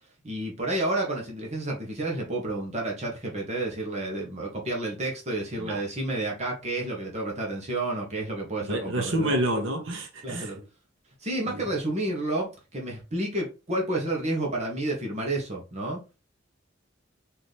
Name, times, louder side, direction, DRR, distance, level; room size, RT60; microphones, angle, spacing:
voice 1, 0.2-9.3 10.2-10.6 11.2-16.0, right 2 dB, 35° right, 1.2 m, -30 dB
voice 2, 8.6-10.5 11.4-11.6, right 1 dB, 85° right, 1.1 m, -28 dB
4.1 x 2.9 x 3.3 m
head